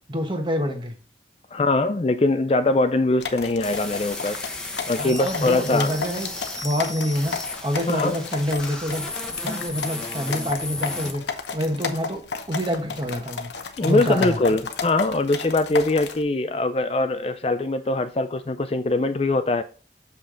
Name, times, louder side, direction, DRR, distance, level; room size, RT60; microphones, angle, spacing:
voice 1, 0.1-1.0 4.9-6.3 6.6-9.1 9.4-11.2 11.5-13.5 13.8-14.4, equal, 25° right, 1.3 m, -27 dB
voice 2, 1.5-4.4 4.9-6.0 7.9-8.2 13.8-19.6, left 2 dB, 35° left, 0.4 m, -22 dB
sound 1, 3.2-16.2, left 5 dB, 80° left, 0.9 m, -33 dB
sound 2, 3.6-11.1, left 2 dB, 5° left, 1.1 m, -34 dB
6.7 x 5.6 x 3.8 m
head